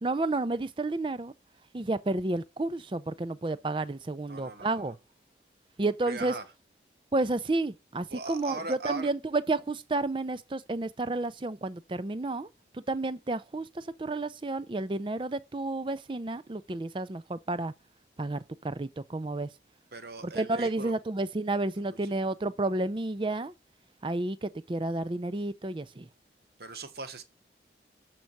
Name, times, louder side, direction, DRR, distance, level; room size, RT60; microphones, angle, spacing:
voice 1, 0.0-1.3 1.7-5.0 5.8-6.3 7.1-12.5 12.9-17.7 18.2-19.5 20.2-23.5 24.0-26.1, right 2 dB, 30° right, 0.5 m, -31 dB
voice 2, 4.3-4.9 6.0-6.4 8.1-9.1 19.9-20.9 22.0-22.1 26.6-27.2, right 3 dB, 60° right, 1.1 m, -39 dB
7.5 x 4.6 x 5.4 m
head